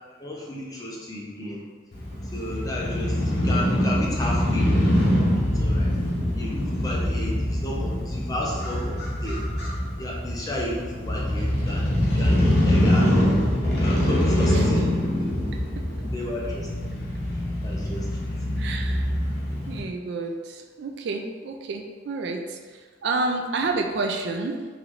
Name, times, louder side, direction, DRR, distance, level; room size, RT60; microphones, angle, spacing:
voice 1, 0.2-1.6 2.3-4.7 5.5-6.0 6.3-9.5 10.0-11.9 12.1-13.1 13.8-15.3 16.1-16.9 17.6-18.3, left 1 dB, 20° left, -3 dB, 0.6 m, -33 dB
Crow / Motorcycle, 1.9-19.8, left 1 dB, 55° left, 0.9 m, -24 dB
voice 2, 15.5-15.8 16.8-17.0 17.7-17.8 18.6-19.1 19.7-24.7, right 3 dB, 65° right, 4 dB, 0.3 m, -30 dB
3.7 x 3.1 x 3.0 m, 1.5 s
head